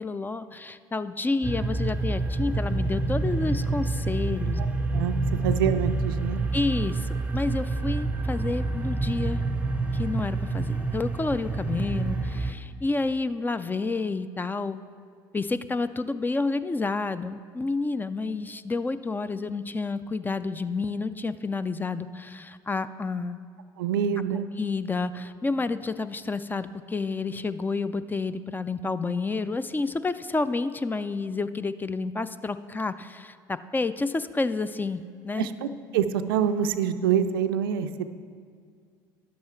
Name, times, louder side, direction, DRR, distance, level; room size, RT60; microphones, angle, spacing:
voice 1, 0.0-4.6 5.3-5.5 6.5-9.4 9.9-14.8 15.3-23.4 24.5-35.5, left 3 dB, 15° left, 13 dB, 0.4 m, -29 dB
sound 1, 1.4-12.5, right 3 dB, 10° right, 0.7 m, -28 dB
voice 2, 5.4-6.4 23.8-24.5 35.4-35.5 35.9-38.0, right 8 dB, 80° right, 10 dB, 0.4 m, -25 dB
10.5 x 7.3 x 4.5 m, 2.1 s
hypercardioid pair, 65°, 12 cm